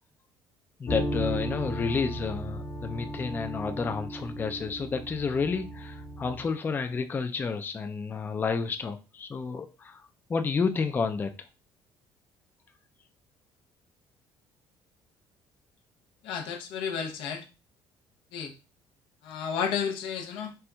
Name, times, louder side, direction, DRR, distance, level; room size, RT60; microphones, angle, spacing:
voice 1, 0.8-10.0 10.3-11.3, left 5 dB, 25° left, 0.3 m, -30 dB
sound 1, 0.9-6.5, equal, 45° left, 0.9 m, -35 dB
voice 2, 16.2-17.4 18.3-18.5 19.2-20.5, left 7 dB, 80° left, 0.6 m, -32 dB
4.3 x 2.5 x 2.2 m
cardioid pair, 110°, 9 cm